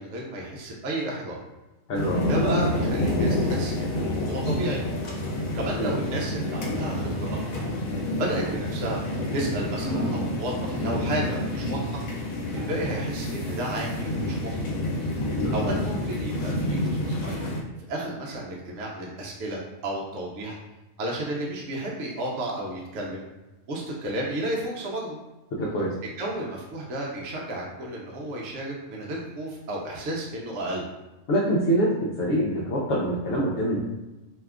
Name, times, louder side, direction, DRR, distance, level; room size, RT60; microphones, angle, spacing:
voice 1, 0.0-1.4 2.3-4.8 5.5-7.6 8.2-9.0 9.3-12.0 12.5-14.7 15.5-17.5 17.9-20.6 21.0-23.2 23.7-25.2 26.2-30.8, right 1 dB, 65° right, -3 dB, 0.9 m, -32 dB
sound 1, 1.9-17.6, left 1 dB, 85° left, 1.1 m, -28 dB
voice 2, 1.9-2.3 5.8-5.9 15.4-15.5 25.5-25.9 31.3-33.8, right 1 dB, 65° left, -5 dB, 0.9 m, -25 dB
2.8 x 2.3 x 3.3 m, 1.1 s
omnidirectional pair, 1.4 m